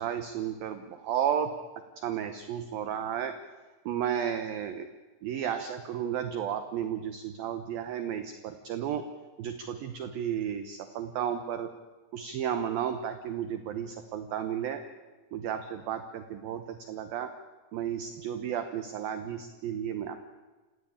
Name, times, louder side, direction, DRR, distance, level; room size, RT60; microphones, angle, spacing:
voice 1, 0.0-1.5 2.0-3.3 3.9-4.9 5.2-9.0 9.4-11.7 12.1-14.8 15.3-17.3 17.7-20.2, right 9 dB, 70° right, 9 dB, 2.3 m, -33 dB
27.5 x 16.0 x 8.7 m, 1.3 s
omnidirectional pair, 5.4 m